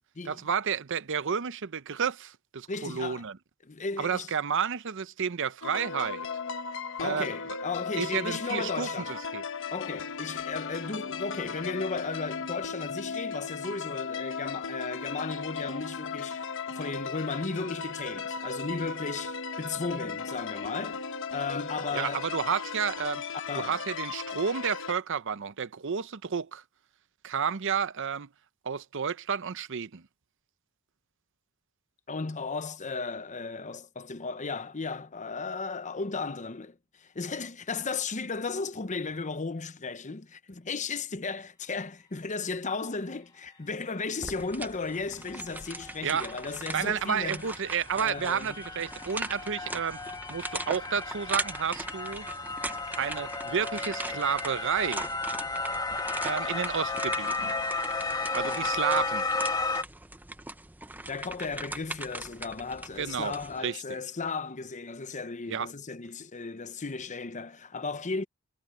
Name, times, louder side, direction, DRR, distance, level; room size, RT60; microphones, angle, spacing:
voice 1, 0.2-3.4 4.0-6.3 7.0-7.3 8.0-9.4 21.9-23.2 23.5-26.6 27.2-28.3 28.6-30.0 46.0-46.3 46.7-50.0 50.3-52.3 53.0-55.1 56.2-57.5 58.3-59.3 63.0-64.0 65.5-65.7, right 7 dB, 60° right, 0.7 m, -31 dB
voice 2, 2.7-3.2 3.6-4.3 7.0-9.1 9.7-21.0 21.3-22.2 23.3-23.8 32.1-47.5 48.0-48.6 61.1-68.3, left 4 dB, 35° left, 0.8 m, -35 dB
sound 1, 5.6-24.9, left 5 dB, 65° left, 1.1 m, -36 dB
sound 2, 44.2-63.6, right 2 dB, 10° right, 0.7 m, -40 dB
sound 3, 45.3-45.4 45.7-59.8, left 3 dB, 20° left, 2.3 m, -34 dB
head